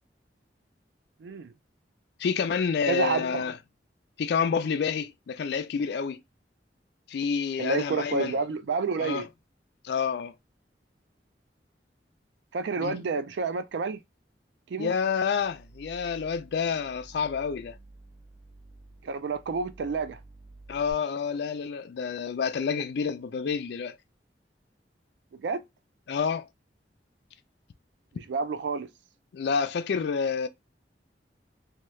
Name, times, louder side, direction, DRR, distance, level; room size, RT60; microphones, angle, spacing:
voice 1, 1.2-1.5 2.9-3.4 7.6-9.3 12.5-14.0 14.7-14.9 19.0-20.2 25.4-25.6 28.3-28.9, right 4 dB, 75° right, 0.4 m, -29 dB
voice 2, 2.2-3.6 4.2-6.2 7.1-8.4 9.0-9.3 9.8-10.3 12.8-13.0 14.8-17.8 20.7-23.9 26.1-26.5 29.3-30.5, left 6 dB, 65° left, 0.4 m, -28 dB
sound 1, 15.3-20.9, right 2 dB, 5° right, 0.7 m, -51 dB
2.9 x 2.3 x 3.1 m
head